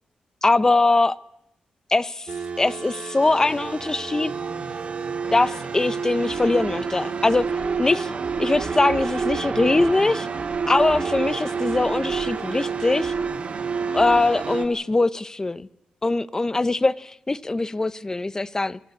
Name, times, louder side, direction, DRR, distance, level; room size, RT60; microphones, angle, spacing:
voice 1, 0.4-1.2 1.9-2.3 2.6-4.3 5.3-7.5 7.8-8.1 8.4-10.3 10.7-13.1 13.9-15.7 16.0-18.8, left 2 dB, 25° left, 0.7 m, -22 dB
sound 1, 2.3-14.6, right 5 dB, 55° right, 2.0 m, -28 dB
23.5 x 13.5 x 8.4 m
cardioid pair, 95°, 3 cm